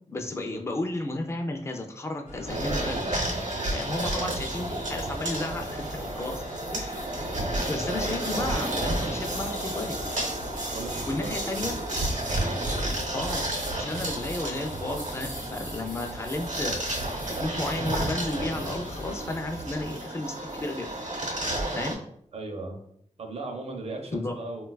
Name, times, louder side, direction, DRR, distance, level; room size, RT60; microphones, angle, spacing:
voice 1, 0.1-3.1 3.7-6.4 6.7-7.0 7.7-10.0 11.1-11.7 13.1-20.9 21.7-22.0 24.1-24.3, left 2 dB, 20° left, 4 dB, 0.3 m, -33 dB
sound 1, 2.3-19.2, left 1 dB, 70° left, 0.7 m, -43 dB
sound 2, 2.5-21.9, right 1 dB, 80° right, 0.8 m, -31 dB
voice 2, 4.2-4.7 7.7-7.9 10.7-11.8 22.3-22.8 23.2-24.7, right 2 dB, 50° right, 2 dB, 0.5 m, -38 dB
3.7 x 2.2 x 2.3 m, 0.69 s
wide cardioid pair, 95°, 13 cm